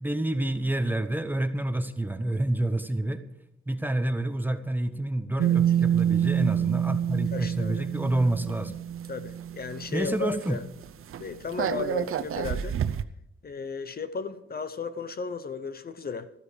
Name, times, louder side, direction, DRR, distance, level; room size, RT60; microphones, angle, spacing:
voice 1, 0.0-3.2 3.7-8.8 9.9-10.6, right 1 dB, 10° right, 9 dB, 0.9 m, -28 dB
sound 1, 5.4-10.1 10.4-10.6 10.8-13.0, right 9 dB, 85° right, 0.7 m, -27 dB
voice 2, 7.3-7.9 9.1-10.6 11.2-12.8 13.4-16.3, left 4 dB, 45° left, 12 dB, 0.8 m, -35 dB
14.0 x 13.0 x 5.0 m, 0.76 s
wide cardioid pair, 155°, 21 cm